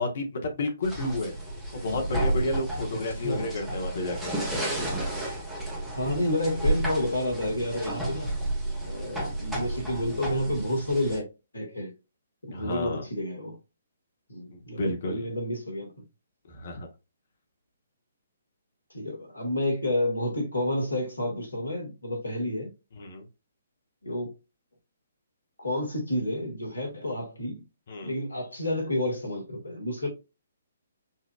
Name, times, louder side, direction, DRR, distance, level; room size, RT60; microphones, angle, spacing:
voice 1, 0.0-1.3 1.7-4.3 12.5-13.0 14.5-15.2 16.5-16.9 23.0-23.2 27.9-28.1, left 2 dB, 50° left, 1.3 m, -31 dB
sound 1, 0.8-11.2, right 1 dB, 5° right, 1.4 m, -32 dB
voice 2, 3.1-3.5 5.9-8.3 8.9-11.3 11.5-11.9 12.4-13.6 14.3-15.9 18.9-22.7 24.0-24.3 25.6-27.6 28.0-30.1, left 1 dB, 80° left, 2.0 m, -30 dB
5.6 x 2.8 x 2.4 m
figure-of-eight pair, 130°, 0 cm